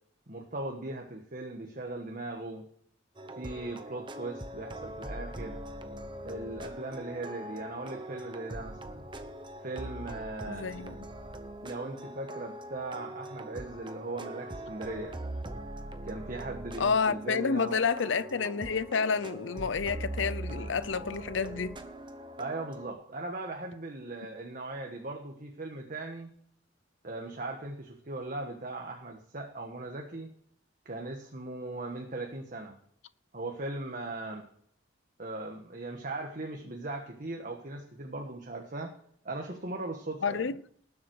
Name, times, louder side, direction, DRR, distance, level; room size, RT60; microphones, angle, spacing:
voice 1, 0.3-2.6 3.3-5.6 6.2-9.0 9.6-10.7 11.6-15.1 16.0-17.8 22.4-26.3 27.0-30.3 30.8-32.8 33.3-34.5 35.2-38.9 39.2-40.4, right 2 dB, 45° right, 1.4 m, -39 dB
sound 1, 3.2-22.9, right 1 dB, 25° right, 0.9 m, -42 dB
voice 2, 10.5-11.0 16.8-21.8 40.2-40.6, left 5 dB, 70° left, 0.6 m, -29 dB
19.0 x 7.4 x 4.7 m
head